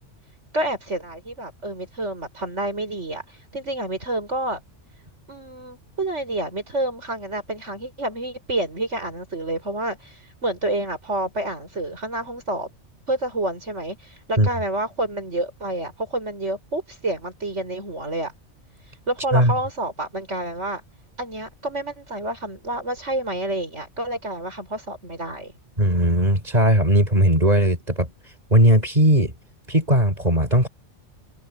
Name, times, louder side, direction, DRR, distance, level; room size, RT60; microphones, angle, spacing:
voice 1, 0.5-4.6 5.3-12.7 13.1-18.3 19.1-20.8 21.2-25.5, right 1 dB, 75° right, 6.8 m, -28 dB
voice 2, 25.8-28.1 28.5-29.3 29.7-30.7, equal, 35° right, 6.8 m, -18 dB
omnidirectional pair, 1.2 m